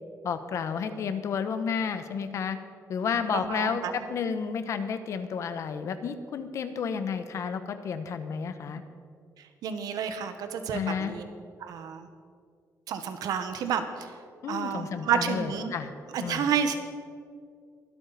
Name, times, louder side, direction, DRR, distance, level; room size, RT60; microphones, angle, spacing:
voice 1, 0.2-2.6 2.9-8.8 10.7-11.2 14.4-15.9 16.2-16.5, left 6 dB, 50° left, 10 dB, 0.9 m, -31 dB
voice 2, 3.3-3.9 9.4-11.3 11.6-12.1 12.9-14.1 14.5-15.7 16.1-16.8, right 7 dB, 75° right, 8 dB, 1.1 m, -30 dB
23.0 x 8.4 x 4.1 m, 2.2 s
cardioid pair, 170°, 7 cm